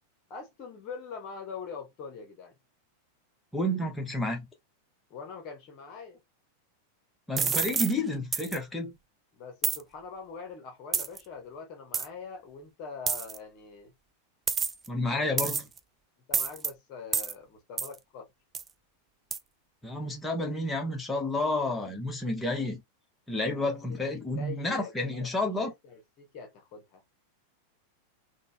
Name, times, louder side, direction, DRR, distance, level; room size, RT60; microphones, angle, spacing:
voice 1, 0.3-2.5 5.1-6.2 9.3-13.9 15.1-15.3 16.3-18.3 23.7-27.0, left 5 dB, 40° left, 0.9 m, -43 dB
voice 2, 3.5-4.5 7.3-8.9 14.9-15.6 19.8-22.8 23.3-25.7, left 1 dB, 10° left, 1.1 m, -30 dB
sound 1, 7.4-7.9 8.3-8.6 9.6-9.8 10.9-11.2 11.9-12.1 13.1-13.4 14.5-14.9 15.4-15.8 16.3-16.7 17.1-17.3 17.8-17.9 18.5-18.7 19.3-19.4, right 6 dB, 20° right, 0.3 m, -28 dB
3.8 x 2.2 x 2.3 m
figure-of-eight pair, 90°, 0 cm